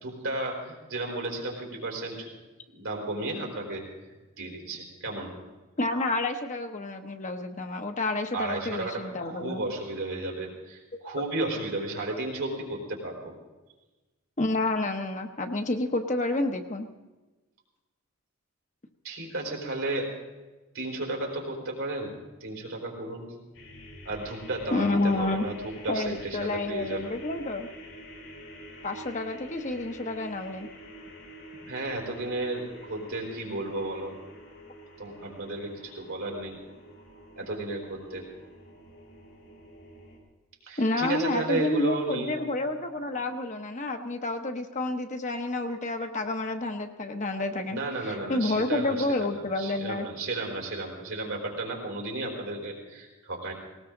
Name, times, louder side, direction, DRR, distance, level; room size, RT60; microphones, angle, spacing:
voice 1, 0.0-2.3 2.7-3.8 4.4-5.4 8.3-13.3 19.0-20.1 20.7-22.2 22.4-23.3 24.0-27.2 31.7-34.1 35.0-36.6 37.4-38.3 40.6-42.4 47.7-53.5, right 2 dB, 70° right, 0 dB, 4.4 m, -33 dB
voice 2, 5.8-9.6 14.4-16.9 24.7-25.4 25.9-27.7 28.8-30.7 40.8-50.1, left 2 dB, 35° left, 5 dB, 1.0 m, -29 dB
sound 1, 23.5-40.2, equal, 75° left, 4.7 m, -47 dB
19.0 x 18.5 x 3.9 m, 1.2 s
head